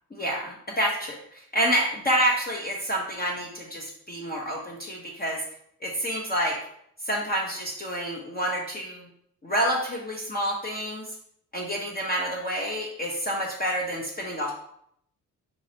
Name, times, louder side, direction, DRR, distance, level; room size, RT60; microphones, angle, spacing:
voice 1, 0.2-5.4 5.8-6.6 7.0-9.0 9.4-11.1 11.5-14.5, equal, 25° left, -2 dB, 0.9 m, -28 dB
4.6 x 4.2 x 2.8 m, 0.69 s
cardioid pair, 80°, 35 cm